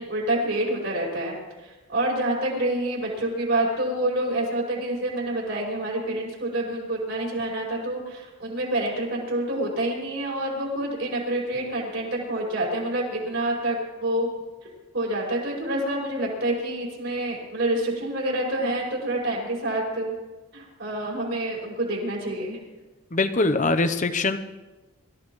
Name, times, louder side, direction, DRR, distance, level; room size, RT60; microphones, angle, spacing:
voice 1, 0.0-1.4 1.6-14.3 14.9-20.1 20.5-22.6, right 1 dB, 55° right, -3 dB, 5.5 m, -27 dB
voice 2, 23.1-24.4, left 3 dB, 35° left, 10 dB, 0.8 m, -22 dB
24.5 x 15.0 x 3.2 m, 1.2 s
head